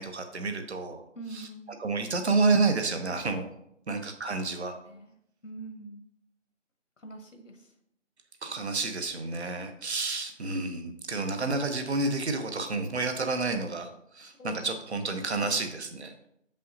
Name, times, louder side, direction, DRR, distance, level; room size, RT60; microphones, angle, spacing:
voice 1, 0.0-1.0 1.8-3.5 3.9-4.8 8.4-13.9 14.1-16.1, right 3 dB, 60° right, 7 dB, 0.9 m, -29 dB
voice 2, 1.1-1.8 4.9-5.1 5.4-6.0 7.0-7.7 14.2-14.6, right 2 dB, 85° left, 5 dB, 1.4 m, -44 dB
6.3 x 5.5 x 2.8 m, 0.74 s
figure-of-eight pair, 165°, 37 cm